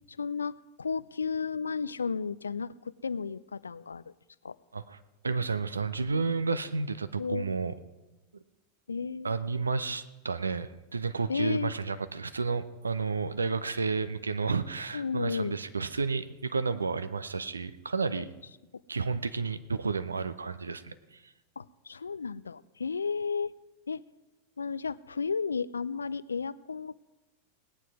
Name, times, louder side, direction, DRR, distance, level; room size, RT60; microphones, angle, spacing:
voice 1, 0.1-4.0 4.4-4.6 7.2-7.5 8.9-9.3 11.3-11.7 14.9-15.6 18.2-18.3 21.6-23.5 23.9-24.0 24.6-27.0, left 5 dB, 75° left, 18 dB, 0.4 m, -33 dB
voice 2, 5.2-7.7 9.2-18.3 18.9-21.3, right 4 dB, 75° right, 12 dB, 0.6 m, -31 dB
18.0 x 9.2 x 4.9 m, 1.0 s
figure-of-eight pair, 90°, 0 cm